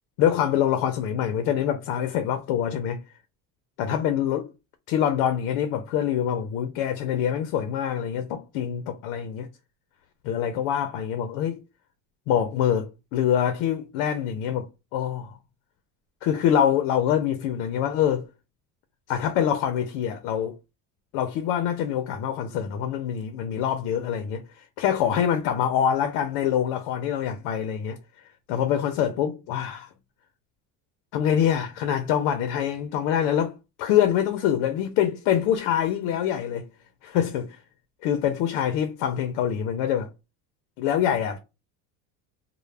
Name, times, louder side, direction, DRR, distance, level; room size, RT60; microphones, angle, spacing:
voice 1, 0.2-3.0 3.8-4.5 4.9-9.5 10.2-11.6 12.3-15.3 16.2-18.3 19.1-20.6 21.1-24.4 24.8-28.0 28.5-29.9 31.1-33.5 33.8-36.7 37.0-37.6 38.0-40.1 40.8-41.4, left 9 dB, 85° left, 0.6 m, -25 dB
2.1 x 2.1 x 3.2 m
cardioid pair, 145°, 40 cm